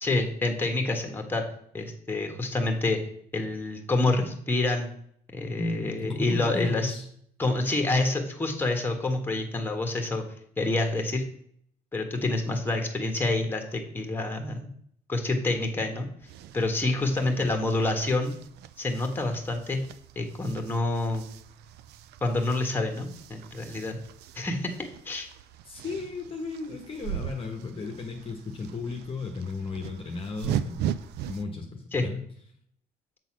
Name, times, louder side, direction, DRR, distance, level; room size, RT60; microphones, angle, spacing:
voice 1, 0.0-1.4 1.7-3.0 3.3-4.9 5.3-6.9 7.4-10.2 10.6-11.2 11.9-14.7 15.1-16.1 16.5-18.3 18.8-19.8 20.1-21.3 22.2-24.0 24.3-24.7 25.0-25.3 31.9-32.0, left 2 dB, 10° left, 3 dB, 1.4 m, -27 dB
voice 2, 5.6-7.1 16.9-17.5 25.6-30.8 31.2-32.2, left 3 dB, 35° left, 3 dB, 1.1 m, -35 dB
sound 1, 16.2-31.4, right 9 dB, 75° right, 0.5 m, -39 dB
7.7 x 4.0 x 6.1 m, 0.66 s
cardioid pair, 110°, 17 cm